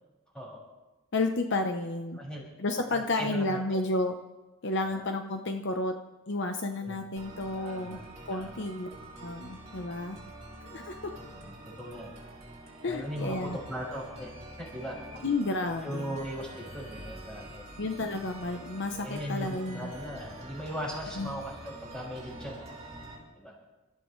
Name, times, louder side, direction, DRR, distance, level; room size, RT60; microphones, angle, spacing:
voice 1, 1.1-2.2 2.6-4.1 4.6-5.9 6.3-8.0 8.3-8.9 9.2-10.2 10.7-10.9 12.8-13.6 15.2-16.1 17.8-19.9 21.2-21.3, left 2 dB, 55° left, 5 dB, 0.8 m, -31 dB
voice 2, 2.9-3.8 4.8-5.1 6.8-7.0 7.5-8.0 8.3-8.7 9.8-9.9 11.3-12.1 12.9-14.3 14.6-15.0 15.6-17.7 19.0-22.8 23.4-23.6, equal, 5° left, -5 dB, 6.0 m, -39 dB
sound 1, 7.2-23.2, right 1 dB, 30° right, 4.8 m, -46 dB
29.0 x 14.5 x 3.2 m, 1.1 s
head